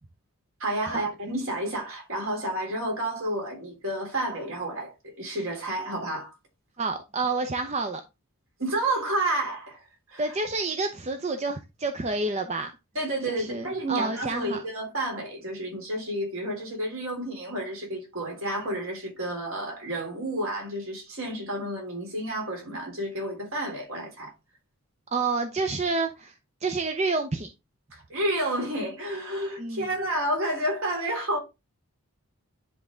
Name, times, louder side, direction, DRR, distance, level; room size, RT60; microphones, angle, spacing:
voice 1, 0.6-6.3 8.6-9.8 10.1-10.2 12.9-24.3 27.9-31.4, right 1 dB, 65° right, 3.4 m, -30 dB
voice 2, 6.8-8.0 10.2-12.7 13.3-14.6 25.1-26.3 26.6-27.5 29.6-29.9, right 3 dB, 30° right, 0.6 m, -29 dB
10.0 x 3.5 x 3.7 m
head